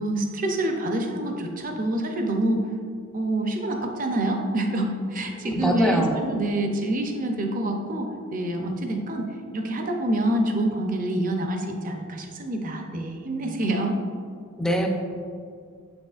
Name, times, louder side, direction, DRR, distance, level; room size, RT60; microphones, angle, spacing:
voice 1, 0.0-2.6 3.1-14.0, right 1 dB, 40° right, 3 dB, 0.6 m, -27 dB
voice 2, 5.4-6.2 14.6-14.9, equal, 5° left, 1 dB, 0.5 m, -23 dB
7.7 x 6.2 x 2.4 m, 2.3 s
head